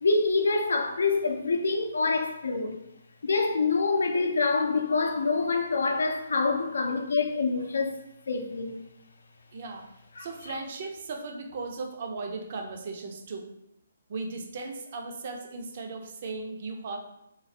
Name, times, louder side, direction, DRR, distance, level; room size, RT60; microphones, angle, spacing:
voice 1, 0.0-2.8 3.2-8.0 8.3-8.8 10.2-10.3, left 4 dB, 80° left, 0.5 m, -26 dB
voice 2, 9.5-9.9 10.2-13.5 14.1-17.0, right 3 dB, 50° right, 0.5 m, -37 dB
3.0 x 2.4 x 2.7 m
hypercardioid pair, 150°, 0 cm